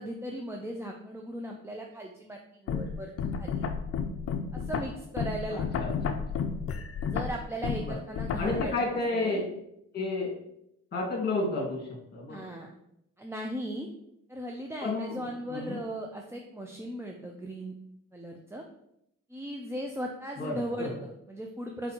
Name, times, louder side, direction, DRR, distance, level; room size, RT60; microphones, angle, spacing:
voice 1, 0.0-3.1 3.4-3.6 4.5-5.6 7.1-8.7 9.1-9.4 12.3-12.7 13.2-13.9 14.3-17.7 18.1-18.6 19.3-21.9, right 1 dB, 10° right, 1 dB, 0.4 m, -37 dB
sound 1, 2.7-8.6, left 6 dB, 50° left, 0.5 m, -31 dB
voice 2, 5.5-5.9 7.8-7.9 8.4-9.4 9.9-10.3 10.9-12.5 14.8-15.2 15.5-15.8 20.4-20.9, left 2 dB, 35° left, -2 dB, 1.7 m, -31 dB
4.6 x 3.9 x 2.9 m, 0.79 s
cardioid pair, 90°, 30 cm